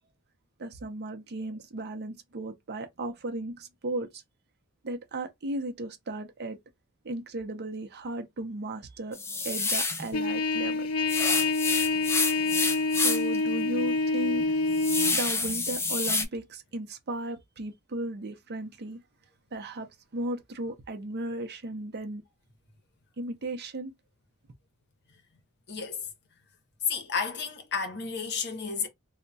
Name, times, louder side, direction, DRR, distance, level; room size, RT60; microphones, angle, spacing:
voice 1, 0.6-4.2 4.8-6.6 7.0-9.2 9.4-10.9 13.0-14.5 15.1-19.0 19.5-22.2 23.2-23.9, right 1 dB, 50° right, 0.6 m, -35 dB
sound 1, 9.1-10.1 11.1-13.4 13.8-13.9 14.3-16.2, left 3 dB, 10° left, 0.5 m, -28 dB
Trumpet, 10.1-15.2, left 3 dB, 85° left, 0.4 m, -27 dB
voice 2, 25.7-26.1 26.9-28.9, left 5 dB, 55° left, 0.8 m, -32 dB
2.2 x 2.1 x 3.9 m
head